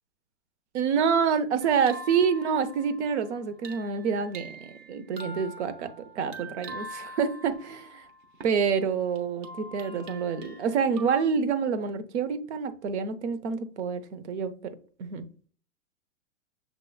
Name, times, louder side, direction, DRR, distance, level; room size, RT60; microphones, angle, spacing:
voice 1, 0.7-5.9 6.1-8.0 8.4-14.5 15.0-15.3, right 6 dB, 60° right, 0.8 m, -27 dB
sound 1, 1.6-8.7 9.2-11.2, right 2 dB, 35° right, 0.9 m, -44 dB
6.8 x 2.9 x 2.3 m
hypercardioid pair, 120°, 38 cm